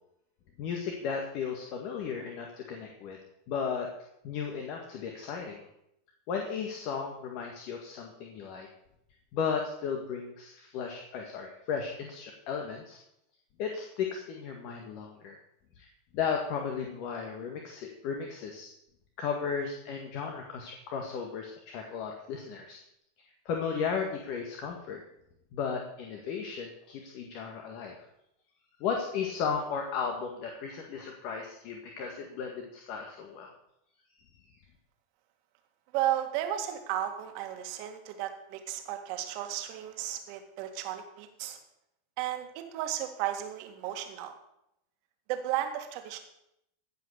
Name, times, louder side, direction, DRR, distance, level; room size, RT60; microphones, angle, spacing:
voice 1, 0.6-3.2 3.5-3.9 4.2-5.7 6.3-8.7 9.3-13.0 13.6-15.4 15.8-15.9 16.1-18.7 19.2-22.8 23.5-25.0 25.5-28.0 28.8-33.5 34.3-34.4, left 6 dB, 55° left, 2 dB, 1.8 m, -35 dB
voice 2, 35.9-41.6 42.2-44.4 45.3-46.2, right 12 dB, 55° right, 5 dB, 1.9 m, -34 dB
15.5 x 5.6 x 6.7 m, 0.79 s
hypercardioid pair, 100°, 0 cm